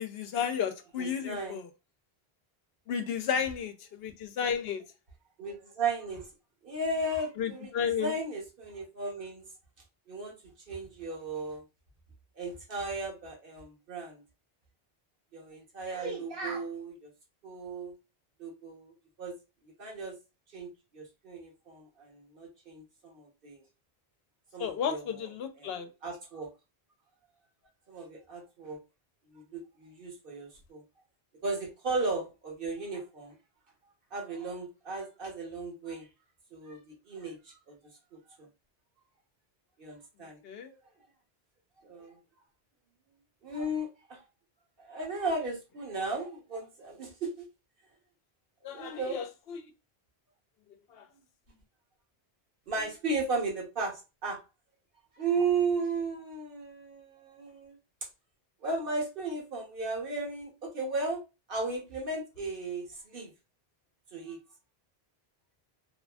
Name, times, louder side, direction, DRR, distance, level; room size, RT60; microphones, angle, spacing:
voice 1, 0.0-1.6 2.9-4.8 7.4-8.1 24.6-25.9 40.4-40.7 48.6-49.6 50.9-51.1, left 7 dB, 75° left, 0.8 m, -33 dB
voice 2, 1.0-1.6 5.4-6.3 6.6-9.4 10.1-10.4 10.7-11.6 12.4-14.2 15.3-17.1 17.4-17.9 18.4-19.4 19.8-20.1 20.5-23.6 24.5-25.3 25.6-26.5 27.9-28.8 29.3-30.8 31.4-33.3 34.1-36.1 36.5-36.8 37.1-37.8 38.1-38.5 39.8-40.4 41.8-42.2 43.4-44.2 44.8-47.4 48.6-49.2 52.7-54.4 55.2-57.8 58.6-61.2 61.5-63.3 64.1-64.4, right 3 dB, 60° right, 1.1 m, -35 dB
2.8 x 2.5 x 2.2 m
omnidirectional pair, 1.1 m